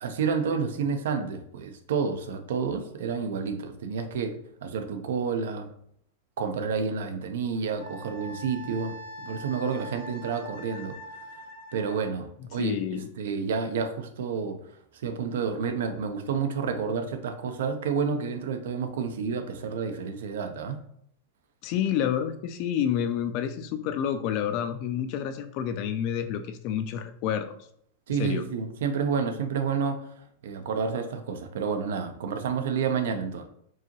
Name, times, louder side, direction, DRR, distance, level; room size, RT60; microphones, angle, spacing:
voice 1, 0.0-5.7 6.4-8.9 9.2-11.0 11.7-14.6 15.0-20.8 28.1-30.0 30.4-33.5, right 6 dB, 80° right, 7 dB, 0.6 m, -29 dB
Wind instrument woodwind instrument, 7.8-12.1, equal, 90° left, 1.3 m, -43 dB
voice 2, 12.6-13.0 21.6-27.5 28.2-28.5, left 9 dB, 45° left, 9 dB, 0.4 m, -29 dB
4.6 x 2.8 x 3.0 m, 0.69 s
supercardioid pair, 145°, 0 cm